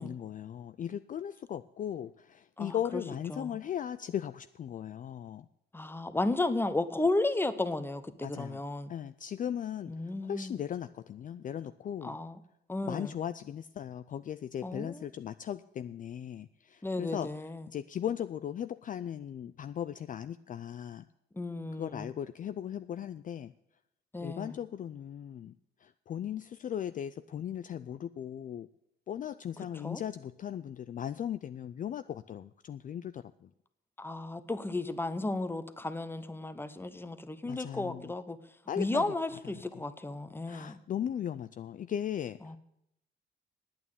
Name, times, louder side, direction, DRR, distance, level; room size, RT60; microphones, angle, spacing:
voice 1, 0.0-5.5 8.2-8.6 8.9-12.2 12.9-17.3 17.7-21.1 21.8-23.5 24.2-25.5 25.8-28.7 29.1-33.5 37.4-38.1 38.7-39.1 39.4-39.8 40.5-42.6, left 9 dB, 45° left, 12 dB, 0.4 m, -38 dB
voice 2, 2.6-3.0 3.3-3.6 5.7-8.9 9.9-10.5 12.0-12.4 12.7-13.1 14.6-15.0 16.8-17.7 21.4-22.1 24.1-24.6 29.8-30.0 34.0-38.4 38.8-40.8 42.4-42.6, left 2 dB, 10° left, 12 dB, 0.9 m, -34 dB
9.2 x 8.6 x 8.7 m, 0.81 s
cardioid pair, 90°, 20 cm